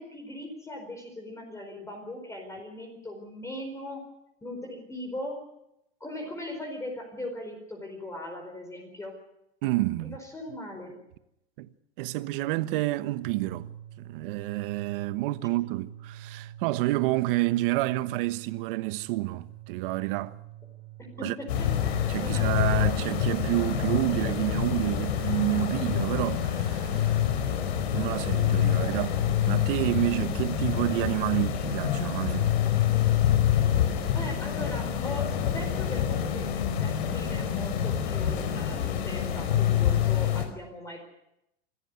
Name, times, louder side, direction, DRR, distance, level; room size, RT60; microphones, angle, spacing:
voice 1, 0.0-4.0 4.4-5.4 6.0-9.1 10.0-11.0 21.0-22.5 34.1-41.0, left 1 dB, 10° left, 4.7 m, -39 dB
voice 2, 9.6-10.2 11.6-11.7 12.0-13.7 14.0-20.3 21.2-21.3 22.1-27.1 27.9-32.5, right 18 dB, 55° right, 1.3 m, -29 dB
sound 1, 13.2-25.0, right 12 dB, 80° right, 6.2 m, -46 dB
sound 2, 21.5-40.5, left 9 dB, 80° left, 4.7 m, -26 dB
26.0 x 14.0 x 9.6 m
supercardioid pair, 140°, 32 cm